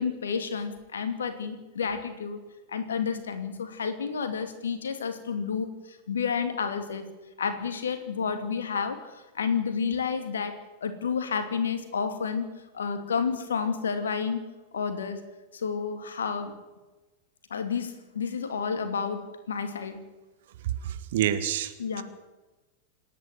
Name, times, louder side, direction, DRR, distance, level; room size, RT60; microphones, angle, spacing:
voice 1, 0.0-2.4 2.7-7.1 7.4-14.5 14.7-15.3 15.5-16.5 17.5-20.0 21.8-22.0, left 6 dB, 70° left, 8 dB, 2.6 m, -30 dB
voice 2, 20.9-22.0, right 11 dB, 55° right, 11 dB, 1.8 m, -28 dB
27.0 x 10.5 x 9.5 m, 1.1 s
figure-of-eight pair, 90°, 0 cm